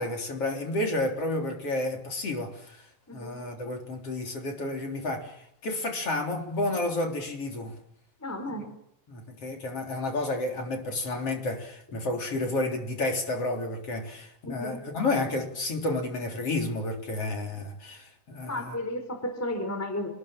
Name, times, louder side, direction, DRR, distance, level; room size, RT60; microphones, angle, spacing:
voice 1, 0.0-2.9 3.1-7.8 9.1-18.8, left 2 dB, 40° left, 4.4 m, -31 dB
voice 2, 3.1-3.4 8.2-8.7 14.4-14.8 18.5-20.1, left 1 dB, 5° left, 4.1 m, -33 dB
28.5 x 20.0 x 7.5 m
omnidirectional pair, 4.5 m